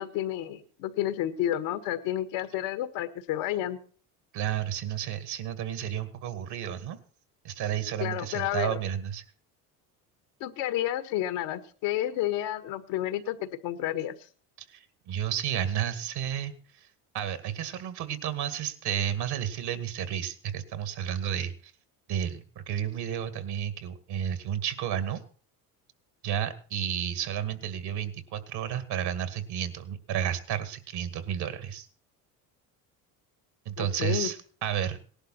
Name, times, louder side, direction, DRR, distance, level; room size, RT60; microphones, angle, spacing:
voice 1, 0.0-3.8 8.0-8.8 10.4-14.1 33.8-34.3, left 12 dB, 70° left, 10 dB, 1.7 m, -30 dB
voice 2, 4.3-7.0 7.4-9.2 14.6-16.9 17.1-21.7 22.1-25.2 26.2-31.9 33.7-35.0, right 9 dB, 60° right, 11 dB, 2.2 m, -32 dB
18.0 x 11.5 x 4.3 m, 0.41 s
supercardioid pair, 80°, 45 cm